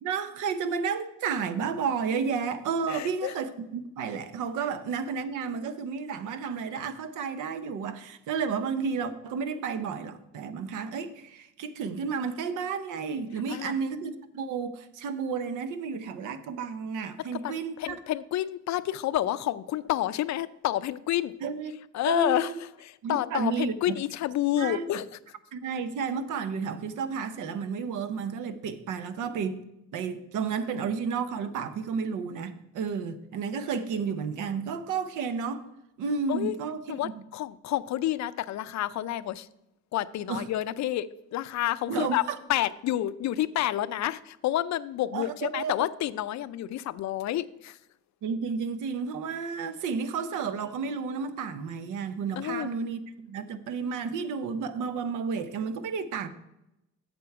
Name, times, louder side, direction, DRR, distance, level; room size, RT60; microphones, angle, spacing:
voice 1, 0.0-18.0 21.4-21.7 22.1-22.5 23.0-23.7 24.5-24.8 25.5-29.6 29.9-35.6 36.0-37.1 40.3-40.4 41.9-42.4 45.1-45.7 48.2-56.3, right 5 dB, 85° right, 0.8 m, -32 dB
voice 2, 2.9-3.4 13.5-13.7 17.3-21.3 21.9-25.2 36.3-36.5 36.9-39.5 39.9-42.2 42.5-47.8 52.4-52.7, left 13 dB, 65° left, 0.5 m, -29 dB
7.9 x 6.8 x 4.7 m
cardioid pair, 90°, 30 cm